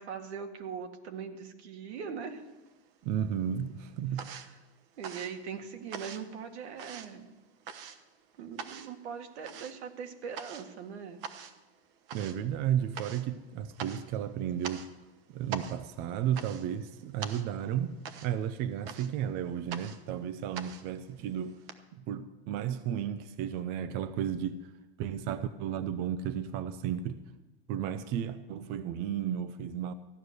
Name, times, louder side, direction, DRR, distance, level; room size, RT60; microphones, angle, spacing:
voice 1, 0.0-2.4 4.4-4.5 5.0-7.3 8.4-11.2, right 6 dB, 75° right, 2.0 m, -41 dB
sound 1, 2.4-3.2 3.5-21.7, right 7 dB, 55° right, 1.2 m, -45 dB
voice 2, 3.0-4.2 12.1-14.9 15.3-21.6 21.9-24.6 25.0-27.2 27.7-29.9, right 9 dB, 30° right, 0.5 m, -33 dB
14.5 x 9.6 x 6.6 m
supercardioid pair, 155°, 34 cm